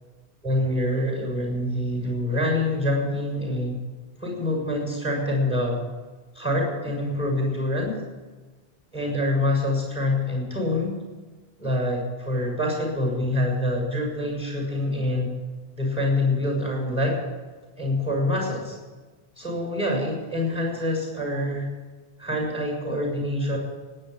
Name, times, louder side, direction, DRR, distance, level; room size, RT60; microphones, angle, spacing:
voice 1, 0.4-3.8 4.2-5.8 6.3-7.9 8.9-10.9 11.6-15.3 15.8-17.2 17.8-18.7 19.4-21.7 22.2-23.6, left 1 dB, 10° left, 0 dB, 6.5 m, -25 dB
18.0 x 9.1 x 8.2 m, 1.3 s
omnidirectional pair, 1.1 m